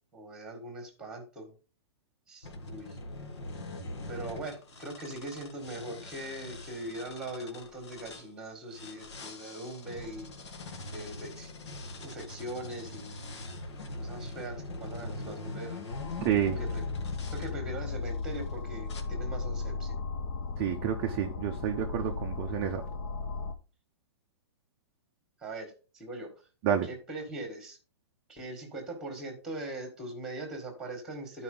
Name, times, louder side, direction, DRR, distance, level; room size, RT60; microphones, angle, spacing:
voice 1, 0.1-1.5 2.3-3.0 4.1-10.3 10.9-11.5 12.0-13.3 14.0-15.9 16.4-16.8 17.3-19.9 25.4-26.3 26.8-27.8 28.3-31.4, right 1 dB, 5° right, 1.6 m, -41 dB
sound 1, 2.4-8.3 8.7-17.5 18.1-18.5 18.9-19.0, left 2 dB, 85° left, 1.8 m, -43 dB
sound 2, 15.9-23.5, left 4 dB, 35° left, 0.6 m, -36 dB
voice 2, 16.2-16.6 20.6-22.8 26.6-26.9, right 10 dB, 20° right, 0.5 m, -29 dB
11.5 x 4.7 x 3.7 m
hypercardioid pair, 170°, 14 cm